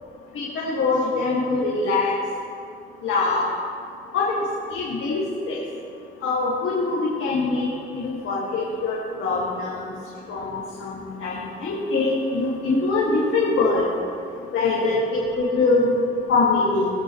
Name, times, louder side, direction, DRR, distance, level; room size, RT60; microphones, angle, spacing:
voice 1, 0.3-2.1 3.0-3.4 4.1-4.3 4.7-5.6 6.2-9.8 10.3-13.9 14.5-16.9, left 3 dB, 80° left, -5 dB, 2.0 m, -23 dB
20.0 x 8.4 x 3.2 m, 2.5 s
cardioid pair, 85°, 20 cm